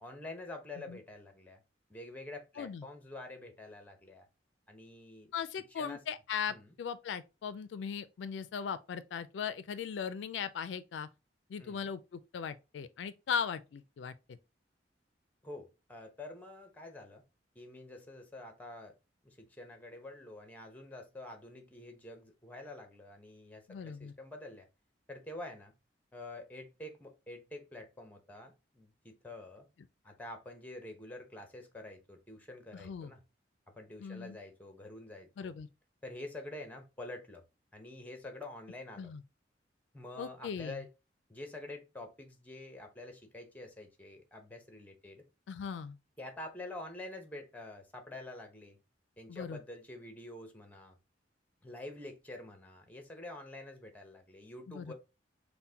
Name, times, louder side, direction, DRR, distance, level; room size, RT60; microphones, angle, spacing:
voice 1, 0.0-1.6 1.9-4.3 4.7-5.3 5.8-6.0 6.5-6.7 11.6-11.9 15.4-17.2 17.5-18.9 19.2-24.7 25.1-25.7 26.1-29.7 30.0-33.2 33.7-35.6 36.0-37.4 37.7-39.1 39.9-40.9 41.3-45.2 46.2-48.8 49.2-51.0 51.6-54.9, left 2 dB, 10° left, 0.8 m, -47 dB
voice 2, 5.3-11.1 11.5-14.4 23.7-24.1 32.7-33.1 34.0-34.4 35.4-35.7 39.0-39.2 40.2-40.8 45.5-46.0 49.3-49.6 54.7-54.9, left 7 dB, 85° left, 0.3 m, -38 dB
5.6 x 2.1 x 2.7 m
head